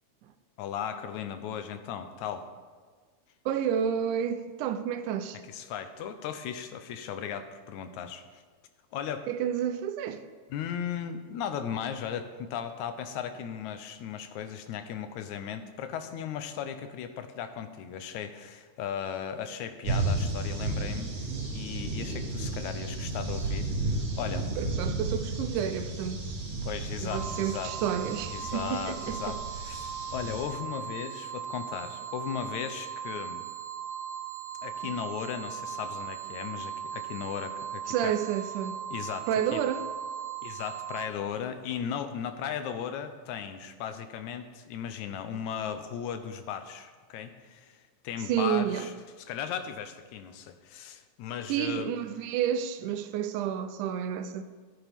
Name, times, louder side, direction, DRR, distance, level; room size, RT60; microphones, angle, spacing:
voice 1, 0.6-2.5 5.5-8.4 8.9-9.3 10.5-21.1 21.5-24.5 26.6-27.7 28.3-33.4 34.6-38.1 38.9-39.6 40.4-47.8 48.0-48.9 49.2-51.9, left 8 dB, 80° left, 2.0 m, -36 dB
voice 2, 3.5-5.4 9.3-10.2 24.6-26.2 27.0-29.4 37.9-38.8 39.3-39.8 48.3-48.9 51.5-54.4, right 9 dB, 90° right, 2.2 m, -30 dB
sound 1, 19.8-30.5, right 2 dB, 60° right, 3.2 m, -33 dB
sound 2, 27.1-41.1, right 8 dB, 40° right, 2.2 m, -38 dB
14.5 x 9.3 x 3.5 m
omnidirectional pair, 3.5 m